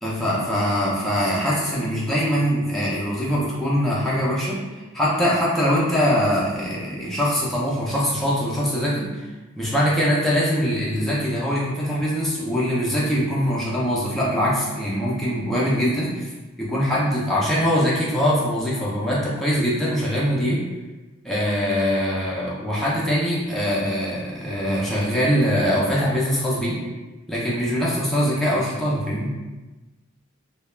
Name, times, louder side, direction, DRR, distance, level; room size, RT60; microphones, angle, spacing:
voice 1, 0.0-9.3 9.6-16.3 16.6-20.6 21.2-26.8 27.3-29.3, equal, ahead, -7 dB, 0.4 m, -22 dB
2.3 x 2.1 x 3.1 m, 1.2 s
head